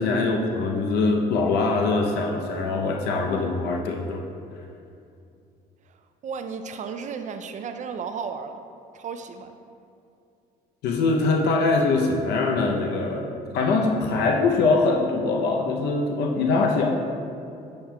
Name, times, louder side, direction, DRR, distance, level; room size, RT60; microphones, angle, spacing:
voice 1, 0.0-4.3 10.8-17.0, left 3 dB, 80° left, 1 dB, 0.6 m, -23 dB
voice 2, 6.2-8.6 8.9-9.6, right 6 dB, 45° right, 8 dB, 0.4 m, -34 dB
8.6 x 7.5 x 2.2 m, 2.5 s
cardioid pair, 110°, 17 cm